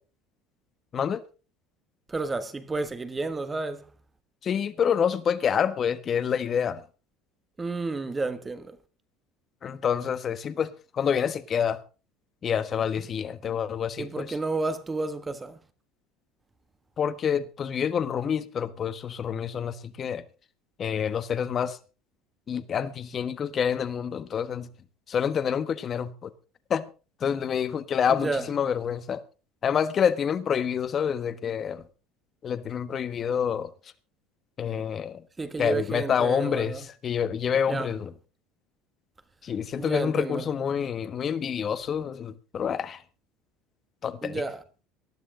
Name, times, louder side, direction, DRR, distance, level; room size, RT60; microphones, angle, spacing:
voice 1, 2.1-3.9 7.6-8.8 14.0-15.6 28.1-28.5 35.4-36.8 37.7-37.9 39.8-40.5 44.2-44.6, right 3 dB, 15° right, 1.4 m, -31 dB
voice 2, 4.4-6.8 9.6-11.8 12.4-14.3 17.0-20.2 20.8-21.8 22.5-24.7 25.1-26.3 26.7-26.9 27.2-29.2 29.6-31.9 32.4-33.7 34.6-35.2 35.6-38.1 39.4-43.0 44.0-44.4, left 7 dB, 30° left, 1.4 m, -27 dB
19.0 x 12.5 x 3.9 m
cardioid pair, 135°, 0 cm